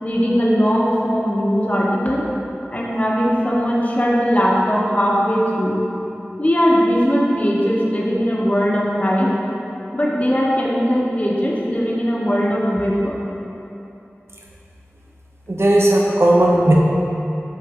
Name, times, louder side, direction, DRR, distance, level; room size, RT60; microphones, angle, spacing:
voice 1, 0.0-2.3 2.7-5.8 6.4-9.3 9.9-13.2, equal, 30° left, -4 dB, 1.0 m, -19 dB
voice 2, 15.5-16.7, right 1 dB, 60° right, -3 dB, 0.8 m, -15 dB
6.5 x 4.7 x 3.6 m, 2.8 s
wide cardioid pair, 45°, 5 cm